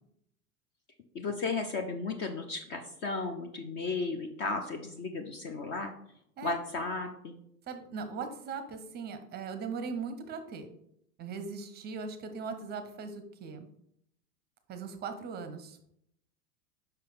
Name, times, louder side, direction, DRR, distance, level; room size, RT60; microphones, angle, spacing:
voice 1, 1.1-5.9 6.4-7.4, left 3 dB, 25° left, 6 dB, 0.5 m, -34 dB
voice 2, 7.7-10.7 11.2-13.7 14.7-15.8, right 5 dB, 20° right, 9 dB, 0.7 m, -39 dB
6.4 x 5.3 x 4.0 m, 0.73 s
figure-of-eight pair, 85°, 48 cm